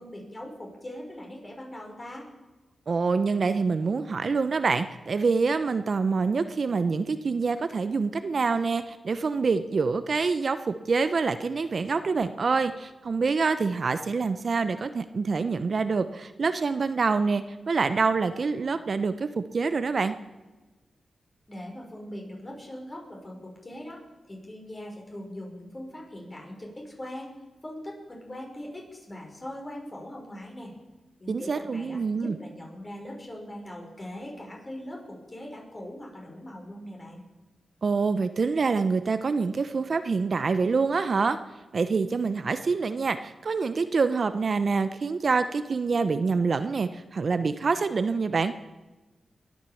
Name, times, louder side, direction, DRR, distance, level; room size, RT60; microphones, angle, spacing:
voice 1, 0.0-2.3 21.5-24.0 24.3-27.3 27.6-30.7 31.2-37.2, left 1 dB, 30° left, -1 dB, 5.8 m, -41 dB
voice 2, 2.9-20.1 31.3-32.4 37.8-41.4 41.7-48.5, right 4 dB, 55° right, 11 dB, 0.8 m, -26 dB
22.0 x 9.3 x 7.1 m, 1.2 s
cardioid pair, 70°, 0 cm